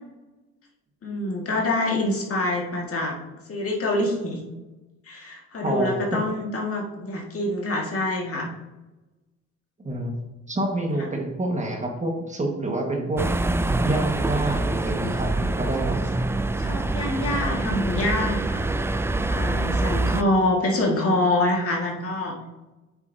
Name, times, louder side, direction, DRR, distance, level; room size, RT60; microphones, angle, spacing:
voice 1, 1.0-3.1 3.5-4.4 5.1-8.5 11.0-11.1 16.6-18.6 19.3-22.3, left 1 dB, 50° left, -1 dB, 1.9 m, -25 dB
voice 2, 5.6-6.2 9.8-10.1 10.5-13.3 13.8-16.0, right 1 dB, 25° right, 1 dB, 1.6 m, -27 dB
sound 1, 13.2-20.2, right 2 dB, 10° right, 0.3 m, -25 dB
8.2 x 6.9 x 2.8 m, 1.1 s
cardioid pair, 90°, 30 cm